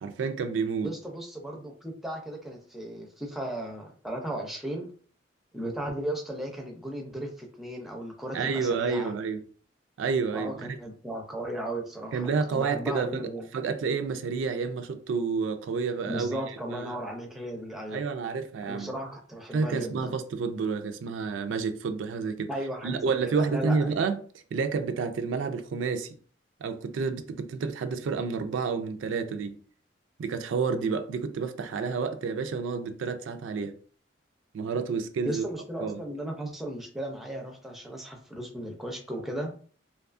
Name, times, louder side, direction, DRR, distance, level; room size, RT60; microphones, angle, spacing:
voice 1, 0.0-0.9 8.3-9.4 10.0-10.8 12.1-17.0 17.9-18.9 19.5-22.5 22.8-24.2 24.5-26.2 26.6-29.6 30.2-33.7 34.5-35.4 35.8-36.0, right 5 dB, 80° right, 0.3 m, -29 dB
voice 2, 0.8-4.9 5.5-9.1 10.3-13.5 16.1-18.0 18.6-20.1 22.5-23.9 35.2-39.5, right 1 dB, ahead, 0.4 m, -36 dB
2.7 x 2.3 x 2.4 m
head